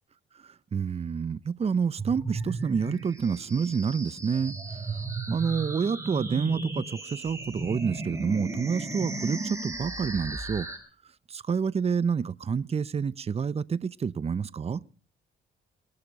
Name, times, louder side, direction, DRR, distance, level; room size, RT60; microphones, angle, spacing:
voice 1, 0.4-4.6 5.3-10.7 11.3-14.8, right 6 dB, 30° right, 0.7 m, -28 dB
sound 1, 2.0-10.8, right 2 dB, 15° right, 4.6 m, -35 dB
22.5 x 12.0 x 5.3 m
cardioid pair, 90°, 20 cm